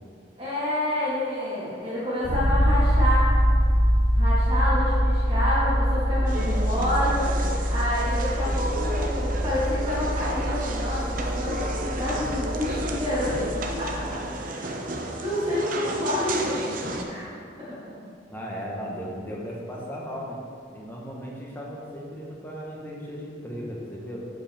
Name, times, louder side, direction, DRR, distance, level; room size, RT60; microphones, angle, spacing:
voice 1, 0.4-3.3 4.1-13.4 13.8-14.8 15.2-16.7 17.0-17.3 17.6-17.8, left 1 dB, 30° right, -10 dB, 1.8 m, -28 dB
sound 1, 2.2-14.2, equal, 80° right, 2.0 m, -24 dB
sound 2, 6.2-17.0, right 1 dB, 45° right, 0.7 m, -33 dB
voice 2, 18.3-20.4 20.7-24.3, equal, 10° left, -4 dB, 1.2 m, -36 dB
10.5 x 5.1 x 3.6 m, 2.3 s
head